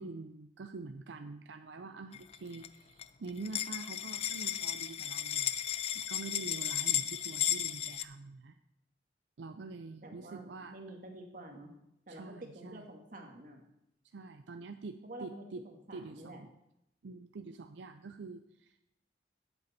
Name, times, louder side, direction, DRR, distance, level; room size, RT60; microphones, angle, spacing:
voice 1, 0.0-5.6 5.9-8.6 9.4-10.8 12.1-12.9 14.1-15.6 15.9-16.5 17.0-18.9, right 3 dB, 80° right, 8 dB, 0.5 m, -46 dB
sound 1, 2.1-2.7 3.0-3.1 3.3-8.0, left 11 dB, 35° left, 0.3 m, -34 dB
voice 2, 10.0-11.7 12.1-13.6 15.0-16.4, right 1 dB, 50° right, 3 dB, 1.5 m, -48 dB
11.5 x 8.0 x 4.1 m, 0.83 s
head